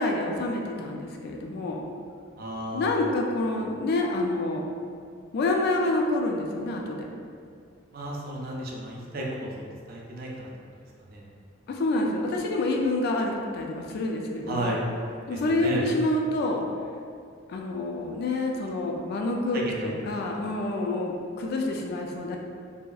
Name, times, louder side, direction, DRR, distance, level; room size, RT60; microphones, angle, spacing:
voice 1, 0.0-1.8 2.7-4.7 5.3-7.0 11.7-14.8 15.3-16.6 17.5-22.4, left 2 dB, 55° left, 1 dB, 0.3 m, -27 dB
voice 2, 2.4-3.1 7.9-10.5 11.1-11.3 14.5-14.8 15.3-15.9 19.5-19.9, right 1 dB, 50° right, -2 dB, 0.4 m, -33 dB
2.7 x 2.3 x 2.3 m, 2.3 s
head